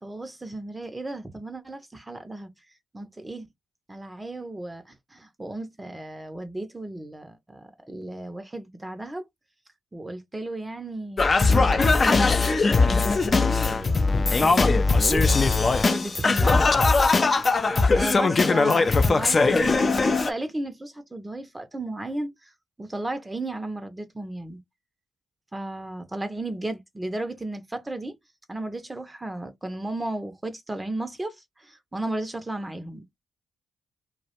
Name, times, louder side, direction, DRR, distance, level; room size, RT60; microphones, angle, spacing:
voice 1, 0.0-2.5 2.9-3.5 3.9-9.3 9.9-12.3 12.8-16.7 17.9-22.5 22.8-24.6 25.5-28.2 28.5-33.2, right 2 dB, 20° right, 0.5 m, -34 dB
Singing, 11.2-20.3, left 3 dB, 40° left, 0.3 m, -20 dB
2.3 x 2.0 x 2.8 m
hypercardioid pair, 45°, 0 cm